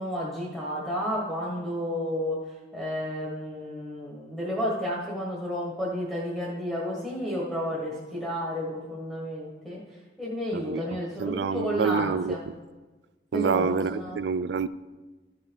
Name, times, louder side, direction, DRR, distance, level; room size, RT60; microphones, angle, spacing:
voice 1, 0.0-2.4 2.7-9.8 10.2-12.4 13.3-14.2, equal, ahead, 1.6 m, -31 dB
voice 2, 10.5-12.5 13.3-14.7, right 5 dB, 70° right, 0.4 m, -28 dB
13.5 x 5.8 x 4.7 m
head